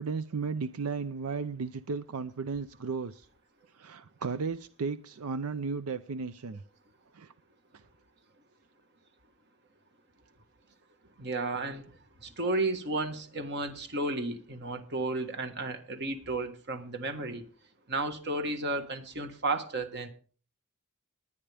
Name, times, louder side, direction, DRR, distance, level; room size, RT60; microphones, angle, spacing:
voice 1, 0.0-3.3 3.7-6.6 7.1-7.3 7.7-7.8, right 5 dB, 85° right, 0.6 m, -34 dB
voice 2, 11.2-11.8 12.2-17.4 17.9-20.1, right 2 dB, 50° right, 1.5 m, -33 dB
20.5 x 9.8 x 3.4 m
head